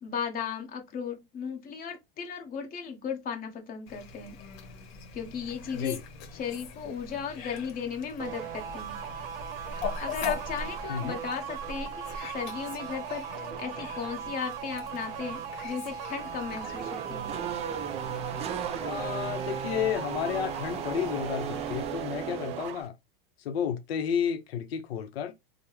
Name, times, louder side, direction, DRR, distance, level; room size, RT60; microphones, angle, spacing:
voice 1, 0.0-4.4 5.1-6.0 6.3-9.0 10.0-13.2 13.6-17.4, left 6 dB, 30° left, 1.0 m, -36 dB
Fowl, 3.9-21.9, left 5 dB, 50° left, 1.3 m, -42 dB
sound 1, 8.2-22.8, right 8 dB, 70° right, 0.7 m, -38 dB
Race car auto racing / Accelerating revving vroom, 16.2-22.9, right 8 dB, 20° right, 0.3 m, -37 dB
voice 2, 18.8-22.9 23.4-25.3, left 8 dB, 85° left, 0.6 m, -31 dB
3.3 x 2.0 x 3.0 m
hypercardioid pair, 115°, 30 cm